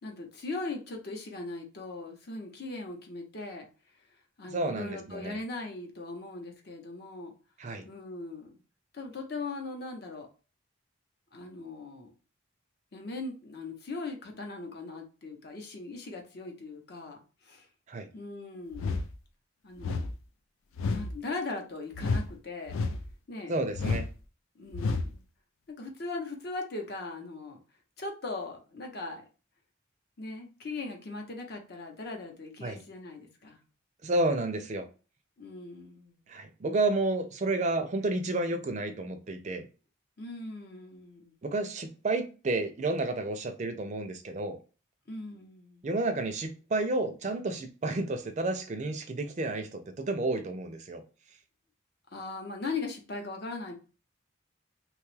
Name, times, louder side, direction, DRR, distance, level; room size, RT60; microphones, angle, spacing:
voice 1, 0.0-3.7 4.4-7.3 7.8-8.5 8.9-10.3 11.3-12.1 12.9-17.2 17.4-17.7 18.1-18.9 19.6-20.1 20.9-22.7 23.3-23.5 24.6-25.2 25.7-27.6 28.0-29.2 30.2-33.6 35.4-36.3 40.2-41.3 45.1-45.9 52.1-53.8, left 3 dB, 50° left, 3 dB, 0.7 m, -39 dB
voice 2, 4.5-5.4 7.6-7.8 17.9-18.1 23.5-24.1 32.6-32.8 34.0-34.9 36.3-39.7 41.4-44.6 45.8-51.0, right 2 dB, 35° right, 7 dB, 0.4 m, -31 dB
sound 1, 18.7-19.1 19.8-20.1 20.8-21.1 21.9-22.3 22.7-23.1 23.7-24.1 24.7-25.1, left 3 dB, 90° left, 0.4 m, -30 dB
2.9 x 2.3 x 3.2 m, 0.34 s
head